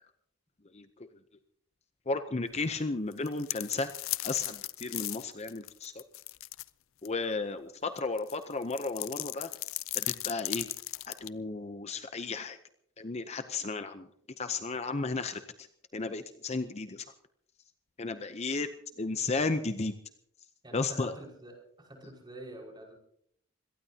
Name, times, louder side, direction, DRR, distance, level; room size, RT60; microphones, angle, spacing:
voice 1, 2.1-3.9 4.2-5.9 7.0-9.5 9.9-10.7 11.1-12.6 13.0-14.1 14.4-15.7 15.9-17.0 18.0-18.7 19.0-19.9 20.7-21.2, left 3 dB, 30° left, 9 dB, 0.7 m, -33 dB
sound 1, 3.1-6.7 7.1-7.2 8.0-11.3, left 17 dB, 80° left, 0.5 m, -36 dB
voice 2, 20.6-23.0, right 1 dB, 20° right, 0 dB, 5.3 m, -46 dB
25.5 x 18.0 x 2.8 m, 0.69 s
head